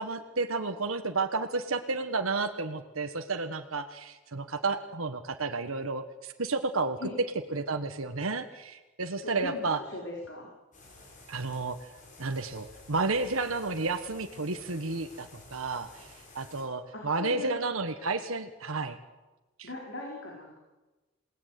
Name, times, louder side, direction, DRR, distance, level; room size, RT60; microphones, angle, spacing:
voice 1, 0.0-7.0 7.5-9.8 11.3-11.8 12.2-19.0 19.6-19.7, right 3 dB, 85° right, 6 dB, 1.5 m, -32 dB
voice 2, 9.2-10.5 16.9-17.6 19.6-20.6, left 1 dB, 60° left, -1 dB, 4.8 m, -39 dB
sound 1, 10.7-16.6, left 2 dB, 40° left, 6.1 m, -52 dB
28.5 x 18.5 x 9.4 m, 1.2 s
head